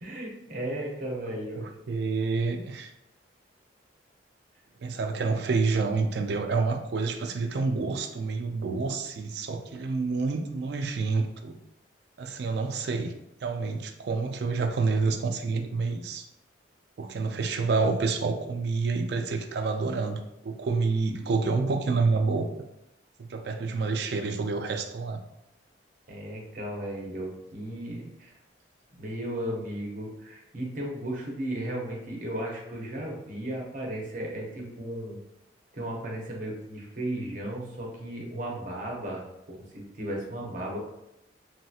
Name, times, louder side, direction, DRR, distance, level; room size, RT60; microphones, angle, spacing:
voice 1, 0.0-1.7 26.1-28.3 28.9-35.2 35.7-40.8, right 1 dB, 45° right, -1 dB, 0.7 m, -35 dB
voice 2, 1.6-2.9 4.8-11.6 12.2-13.1 13.4-16.3 17.0-22.5 23.2-25.2, right 4 dB, 60° right, 5 dB, 0.3 m, -28 dB
3.1 x 2.9 x 2.3 m, 0.85 s
head